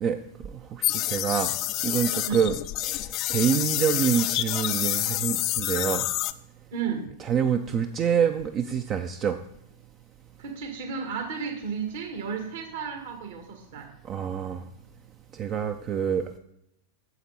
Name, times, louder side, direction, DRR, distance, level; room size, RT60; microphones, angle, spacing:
voice 1, 0.4-1.5 1.8-2.6 2.8-6.0 7.2-9.4 14.1-14.6 15.3-16.4, right 7 dB, 30° right, 8 dB, 0.6 m, -26 dB
sound 1, 0.8-6.3, left 16 dB, 40° left, 0.4 m, -28 dB
voice 2, 6.7-7.1 10.4-13.9, right 6 dB, 60° right, 3 dB, 2.1 m, -33 dB
8.2 x 7.6 x 4.3 m, 0.75 s
figure-of-eight pair, 90°, 0 cm